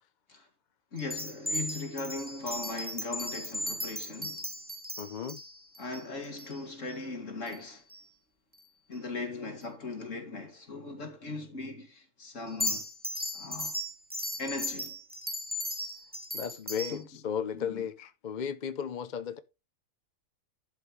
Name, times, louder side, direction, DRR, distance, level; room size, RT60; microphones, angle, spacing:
voice 1, 0.9-4.4 5.8-7.8 8.9-12.9 13.3-13.8 14.4-15.0 16.9-17.1 17.5-17.8, left 3 dB, 65° left, 2.8 m, -39 dB
sound 1, 1.0-7.0 7.5-7.6 7.9-8.1 12.5-17.0, equal, 5° right, 1.5 m, -37 dB
voice 2, 5.0-5.4 16.3-19.4, left 7 dB, 45° left, 0.7 m, -35 dB
11.5 x 5.6 x 4.7 m
omnidirectional pair, 1.4 m